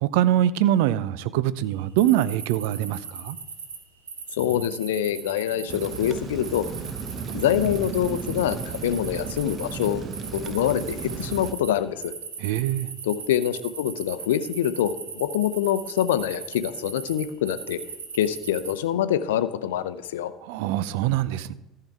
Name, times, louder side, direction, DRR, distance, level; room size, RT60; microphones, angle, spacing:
voice 1, 0.0-3.4 12.4-12.9 20.4-21.5, right 12 dB, 65° right, 0.4 m, -23 dB
sound 1, 2.0-3.8 4.1-6.1 6.4-11.7 12.0-18.7, right 6 dB, 80° right, 1.1 m, -38 dB
voice 2, 4.3-6.7 7.3-12.1 13.0-17.8 18.1-20.3, left 11 dB, 75° left, 0.6 m, -25 dB
Rain, 5.7-11.5, right 6 dB, 40° right, 0.9 m, -34 dB
14.0 x 5.7 x 4.7 m
figure-of-eight pair, 65°, 0 cm